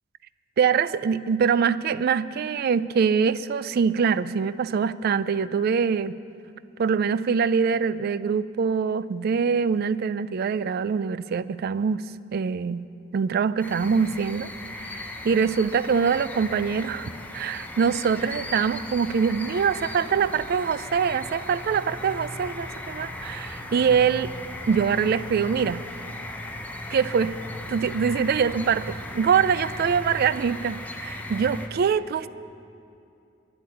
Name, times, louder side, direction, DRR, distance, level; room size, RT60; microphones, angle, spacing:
voice 1, 0.6-6.1 6.8-12.0 12.3-12.8 13.1-14.5 14.8-24.3 24.7-25.8 26.9-27.4 27.7-32.3, right 6 dB, 50° right, 16 dB, 0.3 m, -24 dB
sound 1, 13.6-31.7, left 1 dB, 10° left, 0.8 m, -37 dB
10.0 x 8.5 x 9.9 m, 2.6 s
head